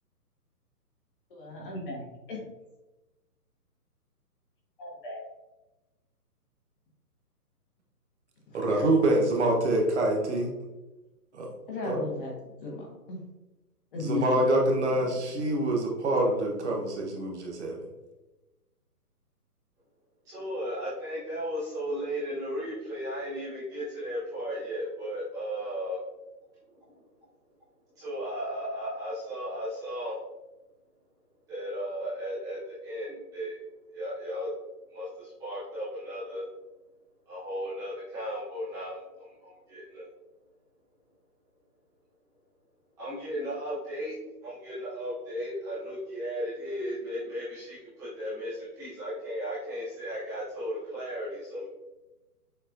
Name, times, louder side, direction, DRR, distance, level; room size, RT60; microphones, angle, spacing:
voice 1, 1.3-2.4 4.8-5.2 8.5-8.6 11.7-13.2 13.9-14.4 14.8-14.9, left 2 dB, 35° left, -2 dB, 1.3 m, -36 dB
voice 2, 8.5-10.5 11.3-11.5 11.9-12.0 14.0-17.8, right 1 dB, 45° right, 0 dB, 0.9 m, -26 dB
voice 3, 20.2-26.0 26.9-27.0 27.9-30.1 31.5-33.6 33.9-34.5 34.9-36.4 37.3-40.1 43.0-44.1 44.4-51.7, equal, 10° right, -13 dB, 0.9 m, -35 dB
6.6 x 2.9 x 2.5 m, 1.1 s
hypercardioid pair, 150°, 47 cm